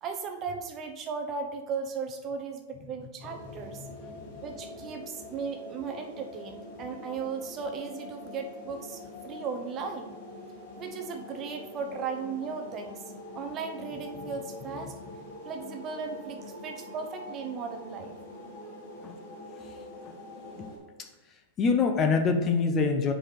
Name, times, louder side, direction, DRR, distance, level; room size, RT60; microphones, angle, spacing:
voice 1, 0.0-3.8 4.4-10.2 10.8-14.9 15.4-18.2, right 5 dB, 30° right, 4 dB, 0.9 m, -36 dB
sound 1, 3.2-20.8, left 1 dB, 50° left, 2.5 m, -44 dB
voice 2, 3.8-4.4 19.0-19.1 20.0-20.1 20.6-20.7 21.6-23.1, left 4 dB, 25° left, 6 dB, 0.7 m, -26 dB
5.0 x 4.9 x 5.8 m, 1.2 s
supercardioid pair, 140°, 0 cm